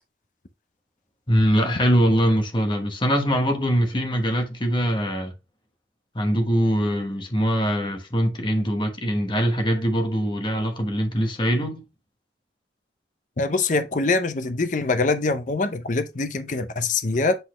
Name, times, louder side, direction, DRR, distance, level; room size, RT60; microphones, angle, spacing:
voice 1, 1.3-5.3 6.1-11.8, equal, 25° left, 1.1 m, -22 dB
voice 2, 13.4-17.4, left 3 dB, 45° left, 0.6 m, -24 dB
7.9 x 4.1 x 3.1 m
head